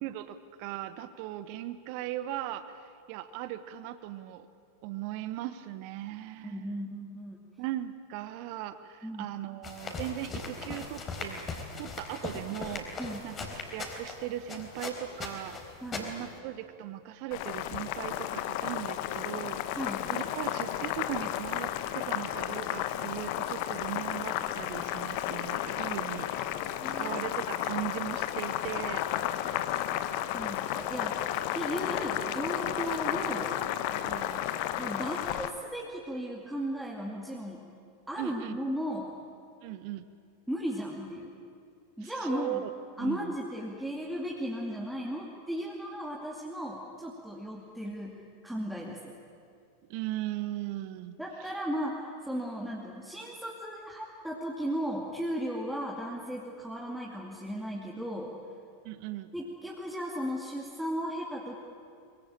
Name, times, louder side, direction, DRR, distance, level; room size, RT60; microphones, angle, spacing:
voice 1, 0.0-4.5 4.8-6.7 7.6-11.4 11.8-12.9 13.2-15.6 15.9-19.8 20.1-29.1 34.0-34.4 38.2-38.6 39.6-40.1 42.0-43.3 49.9-51.2 58.8-59.3, right 13 dB, 45° right, 12 dB, 1.0 m, -38 dB
voice 2, 6.4-7.4 9.0-9.3 13.0-13.2 15.8-16.1 19.8-20.1 26.8-27.2 30.3-33.5 34.8-37.7 38.1-39.1 40.5-41.3 42.0-42.6 43.0-49.1 51.2-58.3 59.3-61.5, equal, 5° right, -3 dB, 2.5 m, -36 dB
sound 1, 9.6-16.4, left 3 dB, 25° left, 4.0 m, -39 dB
Boiling, 17.3-35.5, left 12 dB, 45° left, 1.1 m, -33 dB
23.5 x 23.0 x 8.9 m, 2.4 s
figure-of-eight pair, 90°, 0 cm